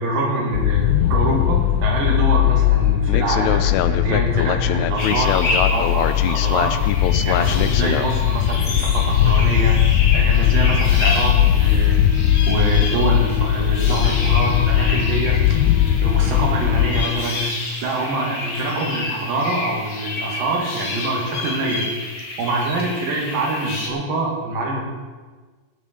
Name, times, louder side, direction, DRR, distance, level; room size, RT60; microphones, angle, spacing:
voice 1, 0.0-6.7 7.0-9.8 10.1-12.0 12.5-15.4 16.0-17.4 17.8-21.9 22.4-24.8, right 2 dB, 80° right, -1 dB, 4.0 m, -24 dB
sound 1, 0.5-17.1, left 11 dB, 85° left, 1.6 m, -18 dB
sound 2, 5.0-23.9, left 2 dB, 45° left, 2.2 m, -30 dB
Wind instrument woodwind instrument, 11.6-17.4, right 2 dB, 50° right, 2.7 m, -36 dB
17.0 x 6.5 x 6.9 m, 1.4 s
omnidirectional pair, 3.9 m